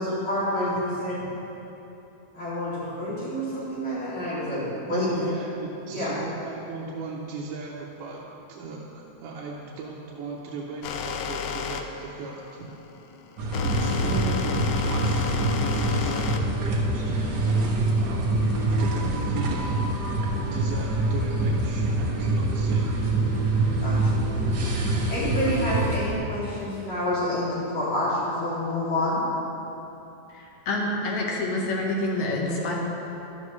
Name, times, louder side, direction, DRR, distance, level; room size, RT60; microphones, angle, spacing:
voice 1, 0.0-1.2 2.3-5.1 5.9-6.1 13.8-14.3 23.8-24.2 25.1-29.2, left 1 dB, 45° left, -10 dB, 3.5 m, -28 dB
voice 2, 4.8-12.7 13.6-17.3 17.9-23.9, right 3 dB, 90° right, -4 dB, 2.4 m, -38 dB
sound 1, 10.8-17.7, left 6 dB, 85° left, 2.2 m, -31 dB
sound 2, 13.4-26.1, right 2 dB, 70° right, 0.9 m, -25 dB
voice 3, 30.3-32.7, left 2 dB, 65° left, -2 dB, 2.6 m, -27 dB
12.5 x 12.0 x 3.2 m, 3.0 s
omnidirectional pair, 3.6 m